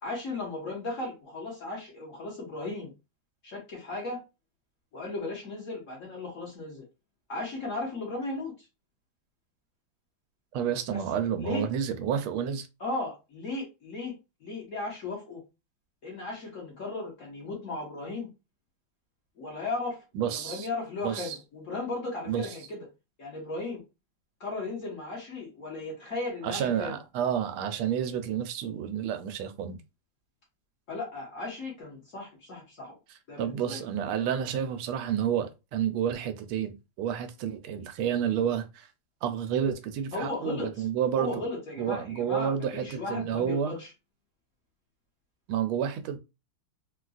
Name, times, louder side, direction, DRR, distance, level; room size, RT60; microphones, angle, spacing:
voice 1, 0.0-2.9 3.4-4.2 4.9-6.8 7.3-8.5 10.9-11.0 11.4-11.6 12.8-14.1 14.4-15.4 16.0-18.3 19.4-22.9 23.2-23.8 24.4-27.0 30.9-32.9 33.3-33.8 40.1-40.8 41.2-43.9, left 2 dB, 45° left, 1.3 m, -36 dB
voice 2, 10.5-12.7 20.1-20.7 21.0-21.4 22.3-22.5 26.4-29.8 33.4-38.9 39.2-41.4 41.8-43.7 45.5-46.2, right 9 dB, 90° right, 1.4 m, -30 dB
3.9 x 2.3 x 2.4 m
omnidirectional pair, 2.3 m